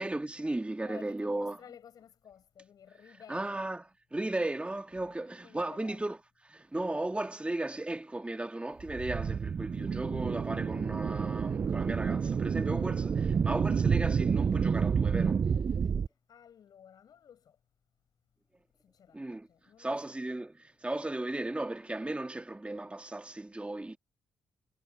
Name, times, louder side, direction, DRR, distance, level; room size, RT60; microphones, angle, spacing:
voice 1, 0.0-1.6 3.3-3.8 4.1-6.2 6.4-15.5 19.1-19.5 19.8-24.0, right 2 dB, 15° right, 2.0 m, -35 dB
voice 2, 0.8-3.6 5.0-6.1 16.3-17.6 18.8-20.2, left 8 dB, 65° left, 7.0 m, -54 dB
sound 1, 8.8-16.1, right 6 dB, 45° right, 0.5 m, -29 dB
hypercardioid pair, 45°, 7 cm